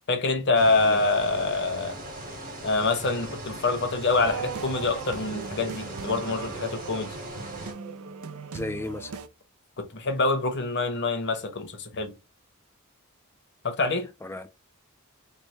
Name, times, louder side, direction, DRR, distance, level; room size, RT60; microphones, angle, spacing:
voice 1, 0.1-2.0 2.6-7.2 9.8-12.1 13.6-14.1, left 3 dB, 50° left, 0.8 m, -26 dB
sound 1, 0.5-7.7, right 1 dB, 40° right, 1.5 m, -39 dB
sound 2, 4.1-9.3, right 6 dB, 75° right, 0.4 m, -38 dB
voice 2, 8.5-9.1 14.2-14.5, left 2 dB, 10° left, 0.3 m, -34 dB
3.1 x 2.1 x 4.1 m
head